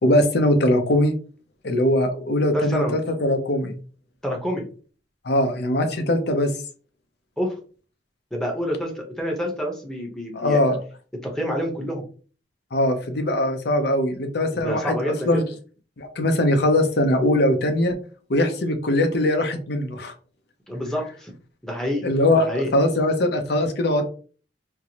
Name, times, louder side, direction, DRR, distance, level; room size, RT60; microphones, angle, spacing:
voice 1, 0.0-1.1 1.6-3.7 5.2-6.5 10.3-10.8 12.7-15.4 16.0-17.9 18.3-20.1 22.0-22.5 22.7-24.1, left 1 dB, 60° left, 6 dB, 0.6 m, -21 dB
voice 2, 2.5-3.0 4.2-4.7 7.4-7.5 8.3-10.6 11.2-12.0 14.5-15.4 20.7-21.3 21.6-22.7, equal, 5° left, -1 dB, 0.8 m, -28 dB
4.3 x 2.1 x 2.7 m, 0.39 s
head